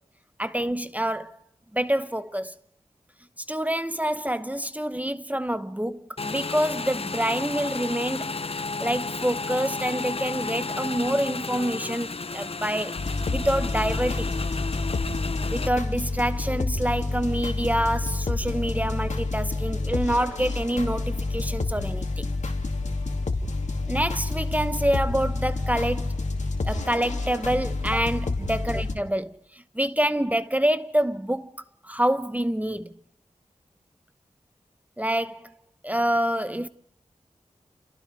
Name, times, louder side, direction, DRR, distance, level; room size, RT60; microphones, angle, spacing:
voice 1, 0.4-1.4 1.7-2.5 3.5-8.3 8.8-13.0 13.3-14.3 15.5-22.3 23.9-26.2 26.6-31.5 31.8-32.9 35.0-35.5 35.8-36.7, right 1 dB, 10° right, 0.9 m, -27 dB
Motorcycle / Engine, 6.2-15.7, left 4 dB, 50° left, 0.8 m, -32 dB
sound 1, 13.0-28.9, left 3 dB, 70° left, 2.4 m, -28 dB
29.5 x 29.5 x 3.4 m
cardioid pair, 50°, 12 cm